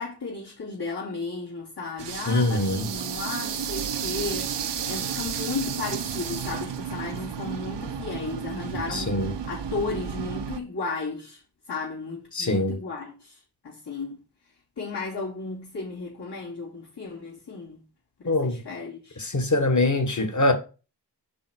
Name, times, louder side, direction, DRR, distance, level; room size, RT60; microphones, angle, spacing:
voice 1, 0.0-11.4 11.7-14.2 14.8-17.8 18.2-19.2, left 4 dB, 75° left, 3.3 m, -34 dB
sound 1, 2.0-10.6, right 7 dB, 80° right, 0.8 m, -32 dB
voice 2, 2.3-2.9 8.9-9.3 12.3-12.8 18.3-18.6 19.2-20.5, left 2 dB, 45° left, 1.7 m, -23 dB
5.5 x 4.3 x 6.1 m
cardioid pair, 50°, 41 cm